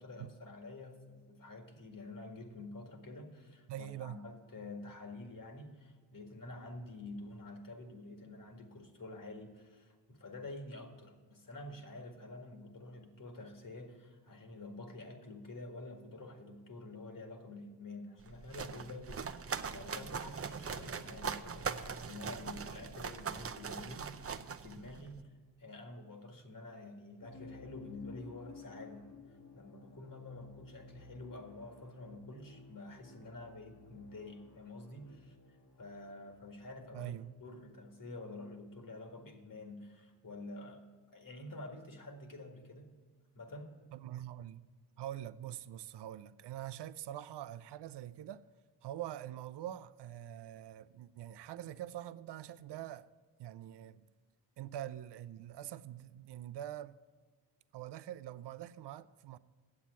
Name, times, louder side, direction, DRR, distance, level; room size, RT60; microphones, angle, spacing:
voice 1, 0.0-37.1 37.4-42.9 43.3-43.7, left 2 dB, 50° left, 1.9 m, -48 dB
voice 2, 3.7-4.2 36.9-37.3 43.9-44.7 45.0-48.4 48.8-53.1 53.4-54.1 54.6-57.0 57.7-59.4, right 12 dB, 80° right, 0.5 m, -44 dB
sound 1, 18.2-25.2, right 6 dB, 35° right, 0.6 m, -41 dB
sound 2, 27.2-37.2, left 4 dB, 80° left, 2.5 m, -56 dB
8.7 x 7.5 x 8.1 m
cardioid pair, 65°, 41 cm